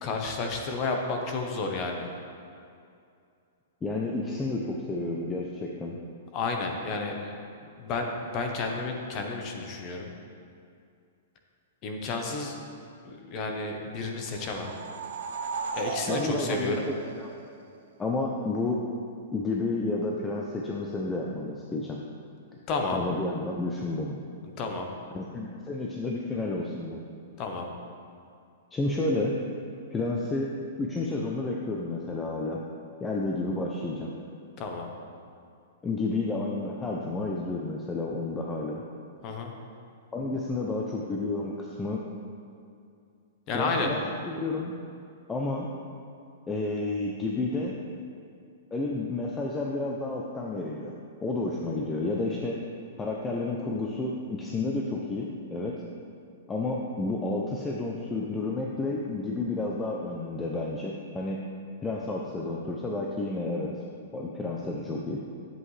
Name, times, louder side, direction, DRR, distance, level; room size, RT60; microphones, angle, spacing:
voice 1, 0.0-2.1 6.3-7.3 7.8-10.1 11.8-12.6 13.0-14.7 15.7-16.8 22.7-23.0 24.4-24.9 27.4-27.7 34.6-34.9 39.2-39.5 43.5-43.9, left 3 dB, 25° left, 3 dB, 0.8 m, -31 dB
voice 2, 3.8-6.0 16.1-16.8 17.2-17.3 18.0-18.8 19.3-22.0 22.9-24.2 25.1-27.0 28.7-29.4 29.9-30.5 30.8-32.6 33.0-34.1 35.8-38.8 40.1-42.0 43.5-44.0 44.3-44.8 45.3-45.7 46.5-47.7 48.7-50.9 51.2-52.6 53.0-55.8 56.5-61.4 61.8-63.7 64.1-65.2, left 2 dB, 10° left, -2 dB, 0.4 m, -31 dB
sound 1, 14.3-17.8, right 5 dB, 55° right, 0.6 m, -36 dB
10.5 x 7.8 x 3.2 m, 2.4 s
hypercardioid pair, 175°, 0 cm